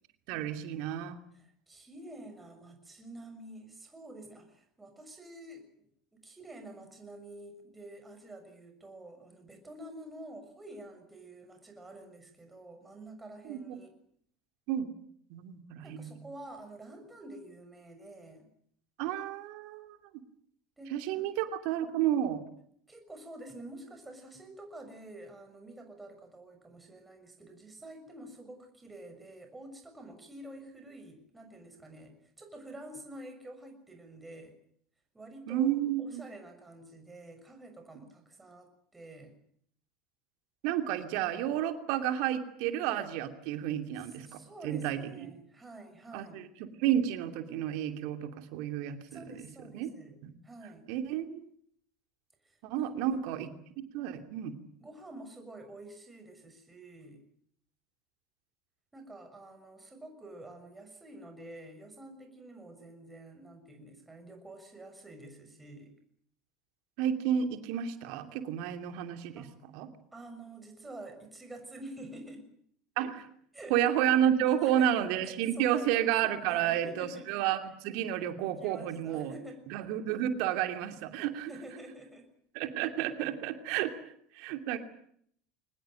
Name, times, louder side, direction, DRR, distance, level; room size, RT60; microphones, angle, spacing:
voice 1, 0.3-1.2 13.5-13.8 14.7-14.9 15.3-16.2 19.0-20.0 20.9-22.4 35.5-36.2 40.6-45.3 46.1-49.2 49.7-49.9 50.2-50.3 50.9-51.5 52.6-53.5 53.9-54.6 67.0-69.5 69.7-69.9 73.0-73.3 73.7-79.3 79.7-81.5 82.5-84.0 84.3-84.8, right 10 dB, 60° right, 8 dB, 2.7 m, -31 dB
voice 2, 1.3-13.9 15.8-18.5 20.8-21.3 22.9-34.5 35.1-39.4 44.0-46.4 49.1-50.2 50.4-50.9 52.4-53.2 54.8-57.2 58.9-65.9 69.4-69.5 70.1-72.5 73.5-74.0 74.4-74.9 75.2-75.9 76.5-77.3 78.4-79.6 81.4-82.3, right 1 dB, 15° right, 5 dB, 6.4 m, -48 dB
23.5 x 20.0 x 9.0 m, 0.66 s
hypercardioid pair, 75°, 0 cm